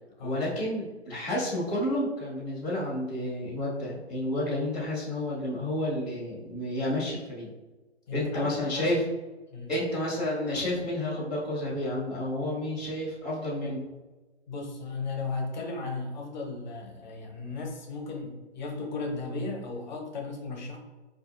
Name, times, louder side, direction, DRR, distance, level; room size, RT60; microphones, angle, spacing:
voice 1, 0.2-7.5 8.1-9.0 9.7-13.8, left 1 dB, ahead, -18 dB, 0.4 m, -30 dB
voice 2, 8.1-9.0 9.5-9.8 12.4-12.5 14.5-20.8, left 3 dB, 40° left, 1 dB, 0.8 m, -36 dB
4.2 x 2.5 x 2.4 m, 1.2 s
hypercardioid pair, 140°, 34 cm